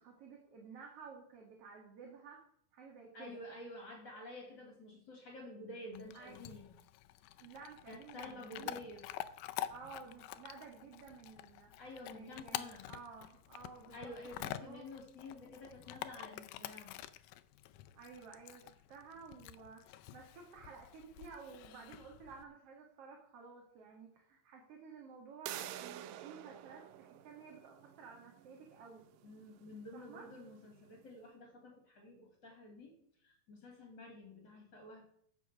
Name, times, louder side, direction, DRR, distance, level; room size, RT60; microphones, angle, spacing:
voice 1, 0.0-2.4 2.7-3.4 6.1-6.4 7.4-8.8 9.7-11.8 12.1-14.1 14.4-14.9 18.0-29.0 29.9-30.2, right 5 dB, 50° right, 0 dB, 2.6 m, -53 dB
voice 2, 3.1-6.7 7.9-9.1 11.8-12.9 13.9-17.0 29.2-32.9 33.2-35.0, left 1 dB, 35° left, 1 dB, 2.9 m, -50 dB
Chewing mastication / Dog, 5.9-22.4, left 13 dB, 80° left, 2.2 m, -48 dB
sound 1, 25.5-31.0, right 12 dB, 85° right, 2.3 m, -50 dB
14.5 x 6.3 x 6.0 m, 0.66 s
omnidirectional pair, 3.9 m